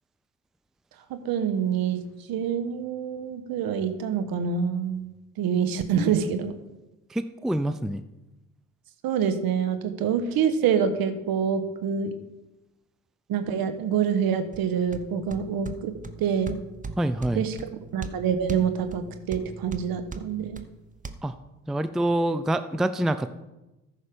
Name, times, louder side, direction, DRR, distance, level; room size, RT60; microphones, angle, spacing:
voice 1, 1.1-2.0 2.3-6.5 9.0-12.1 13.3-15.9 16.2-16.6 17.3-17.6 17.9-20.6, right 7 dB, 60° right, 9 dB, 1.3 m, -26 dB
voice 2, 7.1-8.0 17.0-17.4 21.2-21.4 21.7-23.3, right 1 dB, ahead, 12 dB, 0.5 m, -26 dB
sound 1, 14.5-21.1, right 4 dB, 20° right, 0.9 m, -40 dB
14.0 x 5.7 x 5.1 m, 1.0 s
hypercardioid pair, 55°, 40 cm